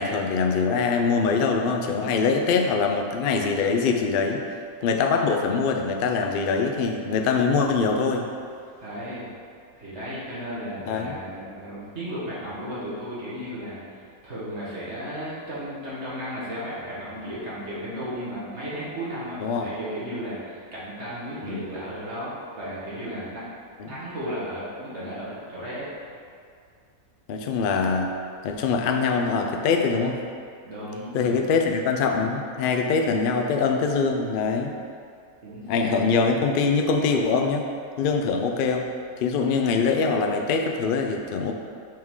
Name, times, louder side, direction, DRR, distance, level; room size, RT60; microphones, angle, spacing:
voice 1, 0.0-4.4 4.8-8.3 10.9-11.2 19.4-19.7 21.4-21.6 23.8-23.9 27.3-28.1 28.4-30.2 31.1-34.7 35.7-37.7 38.0-38.9 39.2-41.5, left 5 dB, 90° left, 3 dB, 0.4 m, -23 dB
voice 2, 8.8-9.3 9.8-23.4 23.9-25.9 30.6-31.5 35.4-35.9, equal, 50° right, -9 dB, 1.7 m, -34 dB
6.0 x 4.6 x 3.6 m, 2.3 s
omnidirectional pair, 1.6 m